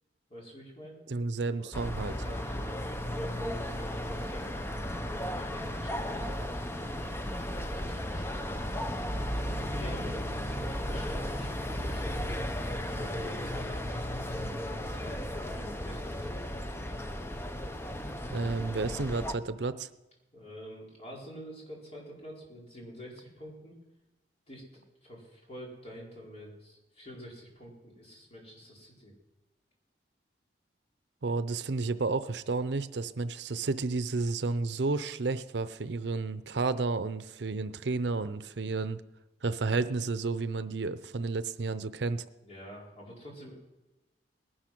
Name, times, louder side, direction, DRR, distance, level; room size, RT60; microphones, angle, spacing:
voice 1, 0.3-1.0 1.6-1.8 2.1-4.8 5.1-6.6 7.5-8.8 9.7-12.3 12.8-16.3 20.3-23.8 24.5-24.6 25.0-29.1 42.4-43.5, equal, 35° left, -3 dB, 4.7 m, -47 dB
voice 2, 1.1-2.1 18.3-19.9 31.2-39.0 39.4-42.2, right 3 dB, 75° right, 13 dB, 0.6 m, -31 dB
sound 1, 1.7-19.3, equal, 15° left, 0.7 m, -35 dB
19.0 x 11.5 x 6.0 m, 1.0 s
head